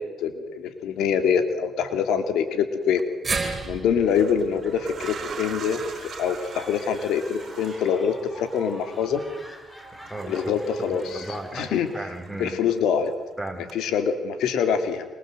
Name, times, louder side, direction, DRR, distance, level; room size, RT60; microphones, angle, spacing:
voice 1, 0.2-3.0 3.6-5.8 6.2-9.2 10.3-11.2 11.5-11.9 12.4-13.1 13.7-15.1, left 7 dB, 85° left, 8 dB, 2.8 m, -24 dB
sound 1, 2.8-3.0 3.9-11.9 12.2-13.2 13.7-13.8, right 7 dB, 60° right, 3.4 m, -42 dB
sound 2, 3.2-7.5 7.9-8.0 9.1-9.2, right 4 dB, 35° right, 7.2 m, -35 dB
sound 3, 4.6-12.4, equal, 15° left, 6.6 m, -45 dB
voice 2, 9.9-10.5 10.9-12.5 13.4-13.7, right 1 dB, ahead, 4 dB, 4.6 m, -35 dB
26.0 x 25.5 x 7.9 m, 1.3 s
cardioid pair, 90°, 0 cm